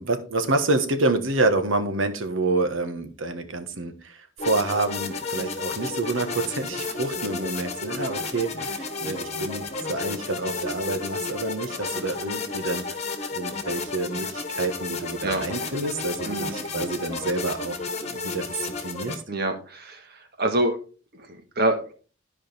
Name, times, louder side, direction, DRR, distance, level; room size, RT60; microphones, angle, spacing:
voice 1, 0.0-13.0 13.3-19.2, right 2 dB, 75° right, 8 dB, 1.3 m, -28 dB
sound 1, 4.4-19.1, left 4 dB, 35° left, 1.3 m, -32 dB
voice 2, 16.2-16.6 19.3-20.0 20.4-20.8 21.1-21.9, right 1 dB, 50° right, 6 dB, 1.5 m, -26 dB
13.0 x 4.9 x 3.4 m, 0.36 s
head